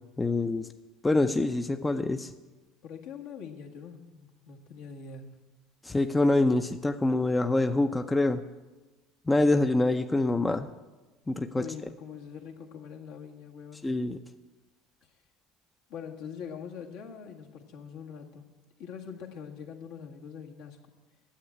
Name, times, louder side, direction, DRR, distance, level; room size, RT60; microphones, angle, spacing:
voice 1, 0.2-0.7 1.0-2.3 5.9-8.4 9.3-10.7 11.3-11.6 13.8-14.2, left 2 dB, 15° left, 8 dB, 0.6 m, -25 dB
voice 2, 2.8-5.3 11.5-13.9 15.9-18.4 18.8-20.8, left 7 dB, 70° left, 1 dB, 1.6 m, -43 dB
10.0 x 7.9 x 8.4 m, 1.2 s
hypercardioid pair, 70°, 0 cm